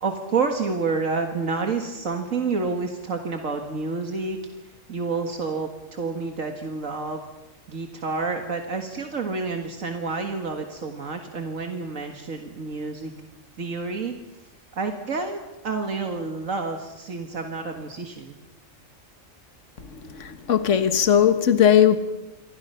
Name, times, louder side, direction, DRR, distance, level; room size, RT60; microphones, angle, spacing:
voice 1, 0.0-4.4 4.6-7.2 7.7-13.1 13.6-14.1 14.7-18.4, right 4 dB, 75° right, 2.1 m, -29 dB
voice 2, 20.0-22.0, left 9 dB, 65° left, 1.6 m, -18 dB
27.5 x 24.5 x 5.7 m
omnidirectional pair, 1.4 m